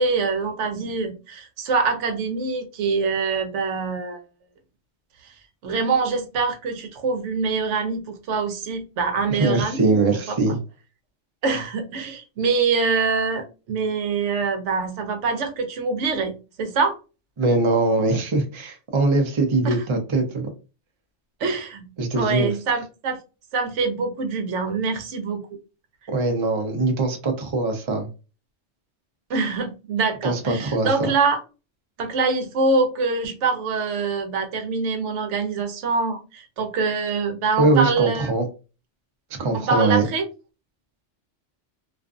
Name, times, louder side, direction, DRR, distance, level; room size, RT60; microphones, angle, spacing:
voice 1, 0.0-4.2 5.2-5.3 5.6-10.0 10.3-10.4 11.4-17.0 19.6-19.8 21.4-23.2 23.5-25.4 29.3-31.4 32.0-38.3 39.5-40.3, right 4 dB, 75° right, 1.0 m, -24 dB
voice 2, 9.3-10.6 17.4-20.5 22.0-22.5 26.1-28.1 30.2-31.1 37.6-38.5 39.4-40.0, right 2 dB, 35° right, 0.5 m, -22 dB
2.5 x 2.4 x 2.3 m
omnidirectional pair, 1.2 m